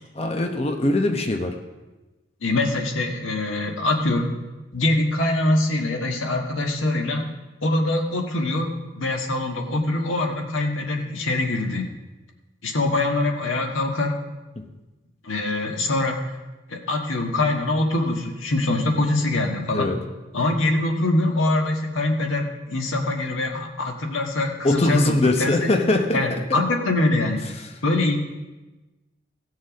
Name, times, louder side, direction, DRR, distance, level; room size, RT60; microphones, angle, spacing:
voice 1, 0.1-1.5 19.7-20.0 24.6-26.6, left 2 dB, 30° left, 4 dB, 0.8 m, -22 dB
voice 2, 2.4-4.3 4.7-7.3 7.6-12.0 12.6-14.1 15.2-16.2 16.7-19.9 20.3-25.7 26.1-27.4 27.8-28.2, left 2 dB, 80° left, 2 dB, 1.5 m, -23 dB
16.5 x 6.5 x 5.1 m, 1.1 s
head